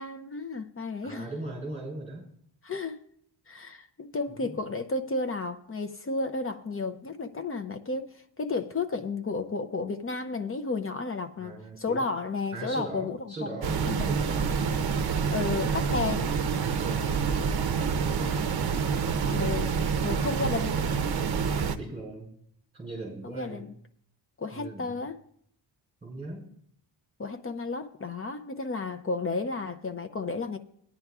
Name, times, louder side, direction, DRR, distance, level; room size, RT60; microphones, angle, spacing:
voice 1, 0.0-1.3 2.6-3.0 3.5-13.6 13.9-14.1 15.3-16.3 19.2-19.7 20.0-20.9 23.2-23.7 24.4-25.2 27.2-30.6, left 3 dB, 30° left, 0.5 m, -32 dB
voice 2, 1.0-2.3 4.3-4.6 11.4-12.1 12.5-14.6 16.6-18.7 21.4-22.3 22.7-23.6 24.5-24.9 26.0-26.5, right 2 dB, 15° right, 5.5 m, -40 dB
sound 1, 13.6-21.8, right 6 dB, 55° right, 0.7 m, -27 dB
18.5 x 10.0 x 2.4 m
wide cardioid pair, 155°, 45 cm